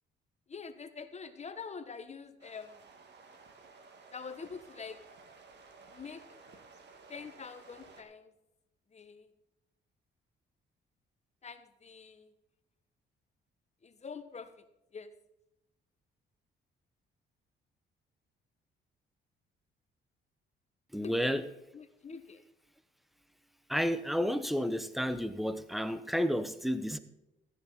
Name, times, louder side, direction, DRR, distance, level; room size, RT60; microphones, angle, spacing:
voice 1, 0.5-2.8 4.1-5.0 5.9-6.2 7.1-8.3 8.9-9.3 11.4-12.3 13.8-14.6 14.9-15.1 21.0-21.4 21.7-22.4, left 5 dB, 35° left, 1.3 m, -45 dB
sound 1, 2.4-8.0, right 4 dB, 60° right, 2.0 m, -56 dB
voice 2, 20.9-21.5 23.7-27.0, equal, ahead, 1.0 m, -31 dB
14.0 x 10.0 x 4.1 m
cardioid pair, 90°, 20 cm